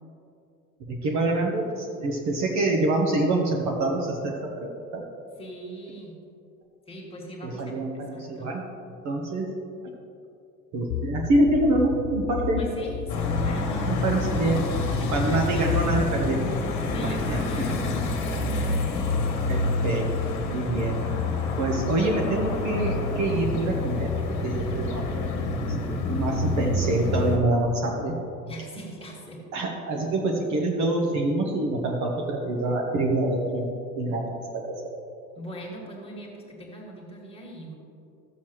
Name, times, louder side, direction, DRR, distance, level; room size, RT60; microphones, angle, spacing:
voice 1, 0.9-5.0 7.4-8.7 9.0-9.5 10.7-12.6 13.9-14.6 15.1-16.4 17.3-17.7 19.5-21.0 21.6-24.1 24.4-25.3 26.1-28.1 29.5-33.7 34.0-34.8, right 2 dB, 35° right, 0 dB, 1.2 m, -26 dB
voice 2, 5.4-6.2 6.9-8.6 12.6-14.0 15.0-16.2 16.9-19.4 28.5-29.4 35.3-37.7, right 1 dB, 10° left, -2 dB, 2.0 m, -40 dB
sound 1, 10.9-16.3, left 9 dB, 80° left, 0.6 m, -32 dB
sound 2, 13.1-27.4, left 2 dB, 40° left, 1.6 m, -28 dB
13.5 x 7.1 x 3.1 m, 2.6 s
figure-of-eight pair, 80°, 49 cm